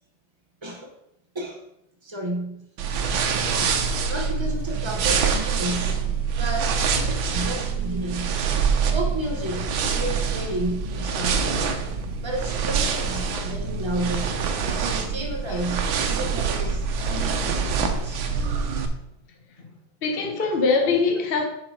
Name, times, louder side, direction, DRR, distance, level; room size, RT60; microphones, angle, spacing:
voice 1, 0.6-1.0 1.3-1.6 2.0-2.7 3.5-6.0 6.4-8.4 8.9-11.5 12.2-14.4 14.7-18.3, right 1 dB, 35° right, 0.4 m, -32 dB
sound 1, 2.8-18.9, right 5 dB, 80° right, 1.6 m, -25 dB
voice 2, 18.3-18.8 20.0-21.5, left 4 dB, 40° left, 1.0 m, -24 dB
7.7 x 4.8 x 4.7 m
omnidirectional pair, 2.1 m